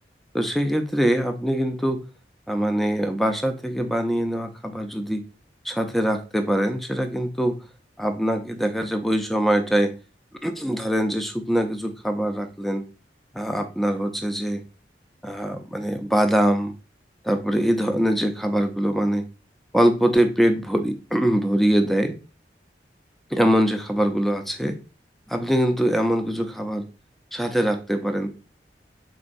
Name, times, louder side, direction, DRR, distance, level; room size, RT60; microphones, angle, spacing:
voice 1, 0.3-2.0 2.5-5.2 5.6-7.6 8.0-9.9 10.4-12.8 13.3-14.6 15.2-16.7 17.2-19.3 19.7-22.1 23.3-24.8 25.3-26.8 27.3-28.3, equal, ahead, 6 dB, 0.5 m, -23 dB
5.3 x 3.9 x 2.5 m, 0.33 s
head